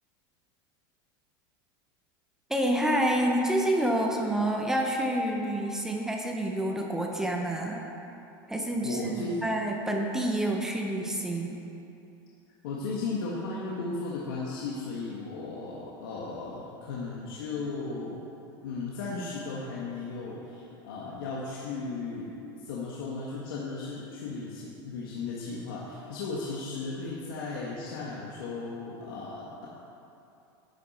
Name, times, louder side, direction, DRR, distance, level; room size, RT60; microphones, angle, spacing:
voice 1, 2.5-7.9 8.5-11.6, right 1 dB, 5° right, 1 dB, 0.7 m, -28 dB
voice 2, 8.8-9.4 12.6-18.2 18.6-29.7, left 3 dB, 85° left, -5 dB, 1.7 m, -36 dB
11.0 x 10.0 x 4.3 m, 2.8 s
supercardioid pair, 170°, 12 cm